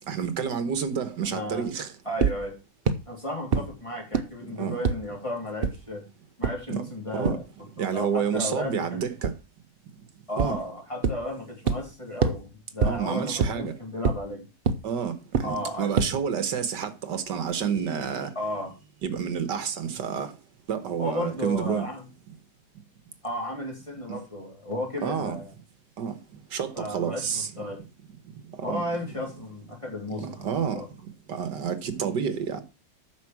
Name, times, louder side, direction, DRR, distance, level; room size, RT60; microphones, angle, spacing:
voice 1, 0.1-1.9 3.5-3.6 4.4-4.8 6.7-6.8 7.1-7.4 7.8-9.3 10.4-10.6 12.8-13.7 14.8-18.3 19.0-20.3 20.7-21.9 24.1-24.2 25.0-25.4 26.0-26.2 26.5-27.6 28.7-28.8 30.2-30.8 31.3-32.6, right 7 dB, 75° right, 1.8 m, -29 dB
voice 2, 1.2-1.6 2.1-2.5 3.1-6.0 6.4-7.4 7.8-9.0 10.3-14.5 15.4-16.0 18.4-18.7 21.0-22.1 23.2-25.5 26.8-27.8 28.6-30.9, left 1 dB, 15° left, 3.6 m, -34 dB
sound 1, 2.2-2.3 2.9-3.0 3.5-3.6 4.1-4.2 4.8-4.9 5.6-5.7 6.4-6.5 7.2-7.3 9.2-9.3 10.4-10.5 11.0-11.1 11.7-11.8 12.2-12.3 12.8-12.9 13.4-13.5 14.0-14.1 14.7-14.8 15.3-15.4 16.0-16.1, right 5 dB, 45° right, 0.8 m, -22 dB
9.3 x 6.4 x 6.0 m
omnidirectional pair, 1.9 m